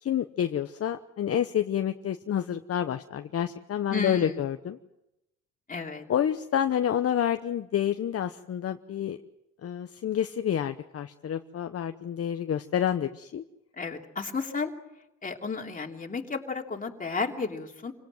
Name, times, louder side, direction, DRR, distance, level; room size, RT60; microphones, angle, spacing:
voice 1, 0.0-4.8 6.1-9.2 9.6-13.4, left 9 dB, 50° left, 8 dB, 1.0 m, -28 dB
voice 2, 3.9-4.4 5.7-6.0 13.8-14.7 15.2-17.9, left 4 dB, 25° left, 1 dB, 3.1 m, -33 dB
27.5 x 18.0 x 7.8 m, 0.92 s
cardioid pair, 90°, 30 cm